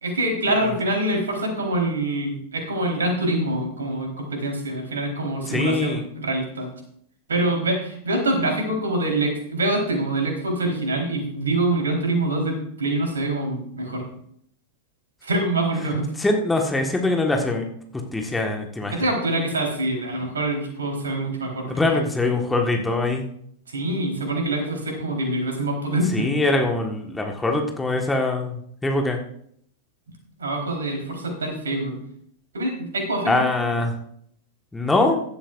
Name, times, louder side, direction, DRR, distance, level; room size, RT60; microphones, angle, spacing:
voice 1, 0.0-6.7 7.3-14.1 15.2-16.1 18.9-22.0 23.7-26.4 30.4-32.0 32.5-33.5, right 1 dB, 70° right, 1 dB, 4.2 m, -25 dB
voice 2, 5.5-6.0 16.2-17.6 18.1-18.9 21.7-23.2 26.1-29.2 33.3-33.9 34.7-35.2, left 2 dB, 10° left, 2 dB, 1.6 m, -23 dB
16.0 x 12.5 x 2.6 m, 0.69 s
figure-of-eight pair, 90°, 0 cm